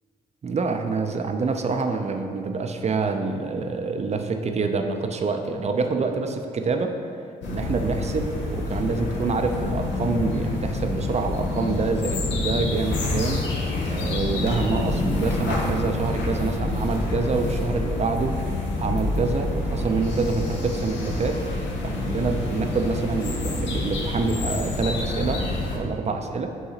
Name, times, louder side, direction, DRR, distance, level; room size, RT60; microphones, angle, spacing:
voice 1, 0.4-7.0 7.5-13.4 13.8-18.3 18.8-21.4 21.8-25.4 25.7-26.5, right 4 dB, 35° right, 6 dB, 0.4 m, -26 dB
sound 1, 7.4-25.8, left 2 dB, 80° left, 0.6 m, -27 dB
5.6 x 2.8 x 2.8 m, 2.4 s
supercardioid pair, 50°, 19 cm